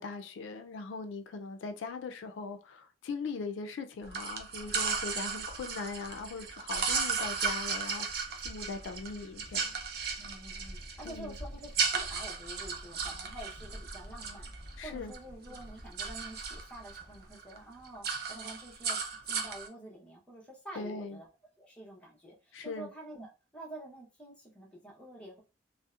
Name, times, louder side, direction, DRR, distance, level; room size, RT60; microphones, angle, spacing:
voice 1, 0.0-9.7 11.0-11.4 14.8-15.1 20.8-21.2 22.5-22.9, left 4 dB, 90° left, 0.4 m, -40 dB
sound 1, 4.0-17.3, equal, 40° left, 0.7 m, -50 dB
sound 2, 4.1-15.2 15.5-17.0 17.3-17.6 17.8-19.7, right 5 dB, 55° right, 0.4 m, -35 dB
voice 2, 10.2-21.3 21.6-25.4, right 1 dB, 5° left, 0.7 m, -48 dB
2.6 x 2.0 x 2.3 m
head